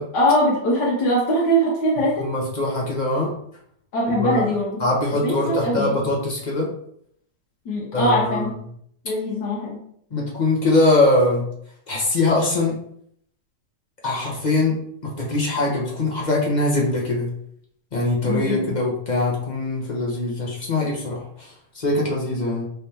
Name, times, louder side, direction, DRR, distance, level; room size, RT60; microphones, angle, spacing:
voice 1, 0.1-2.3 3.9-4.8 5.2-6.0 7.6-8.5 9.0-9.8 18.2-18.7, equal, 70° left, -3 dB, 1.5 m, -22 dB
voice 2, 2.2-3.3 4.2-4.4 4.8-6.7 7.9-8.5 10.1-11.5 11.9-12.8 14.0-17.3 17.9-22.7, left 2 dB, 30° left, -3 dB, 0.8 m, -22 dB
5.1 x 3.4 x 2.9 m, 0.68 s
omnidirectional pair, 1.9 m